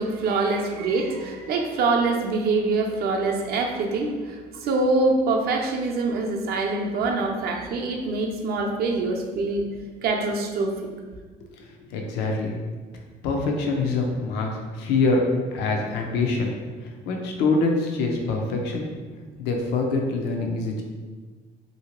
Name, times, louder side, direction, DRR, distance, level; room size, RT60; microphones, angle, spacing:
voice 1, 0.0-9.7 10.0-10.8, right 3 dB, 65° right, 2 dB, 0.5 m, -24 dB
voice 2, 11.6-12.6 13.2-15.2 15.5-16.5 17.1-18.9 19.4-20.8, left 3 dB, 90° left, 2 dB, 0.5 m, -25 dB
2.8 x 2.7 x 3.0 m, 1.4 s
cardioid pair, 110°, 17 cm